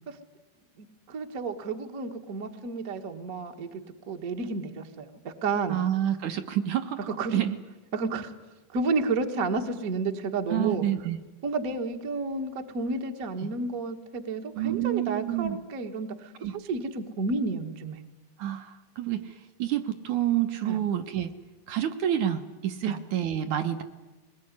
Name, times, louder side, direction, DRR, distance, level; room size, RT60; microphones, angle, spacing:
voice 1, 0.8-3.8 4.1-5.8 7.1-7.4 7.9-8.3 8.7-10.8 11.4-18.0 20.6-20.8 22.8-23.0, right 3 dB, 50° right, 4 dB, 1.0 m, -31 dB
voice 2, 5.7-7.6 10.5-11.2 13.4-13.5 14.5-15.6 16.4-16.5 18.4-21.3 21.7-23.8, right 11 dB, 70° right, 6 dB, 2.0 m, -28 dB
21.5 x 21.0 x 9.7 m, 1.2 s
omnidirectional pair, 4.1 m